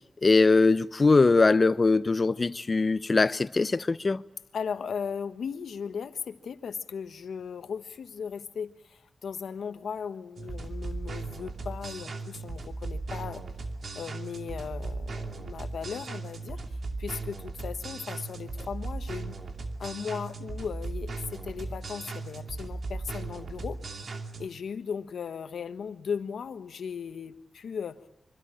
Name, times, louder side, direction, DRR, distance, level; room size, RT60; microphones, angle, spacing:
voice 1, 0.2-4.2, left 3 dB, 40° left, 0.9 m, -22 dB
voice 2, 4.5-13.4 13.9-16.6 17.0-19.4 19.8-23.8 24.4-28.0, left 6 dB, 85° left, 1.3 m, -37 dB
sound 1, 10.4-24.5, right 3 dB, 65° right, 2.6 m, -37 dB
25.5 x 25.0 x 8.8 m
cardioid pair, 70°, 0 cm